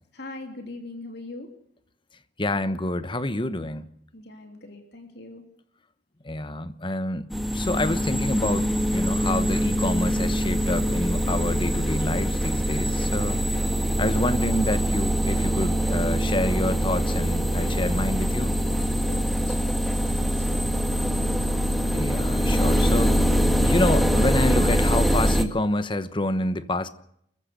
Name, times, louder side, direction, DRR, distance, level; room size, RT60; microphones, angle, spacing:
voice 1, 0.1-1.5 4.1-5.4 19.0-21.3, left 2 dB, 65° left, 3.2 m, -42 dB
voice 2, 2.4-3.9 6.2-13.4 14.0-18.5 21.9-23.2 23.6-26.9, left 1 dB, 30° left, 1.1 m, -27 dB
sound 1, 7.3-25.4, equal, ahead, 1.8 m, -23 dB
28.0 x 15.0 x 6.7 m
head